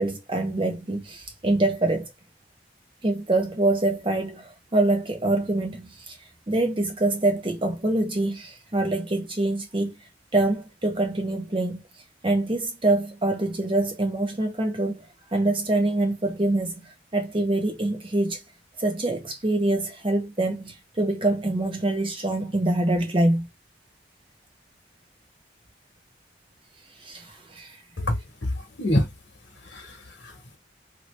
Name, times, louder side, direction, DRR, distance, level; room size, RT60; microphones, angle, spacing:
voice 1, 0.0-2.1 3.0-6.2 6.5-9.9 10.3-11.8 12.2-18.4 18.8-23.5 27.0-27.7, right 2 dB, 30° right, 0.8 m, -25 dB
voice 2, 28.0-29.1 29.6-30.6, left 1 dB, 75° left, 1.1 m, -27 dB
2.8 x 2.7 x 3.2 m
head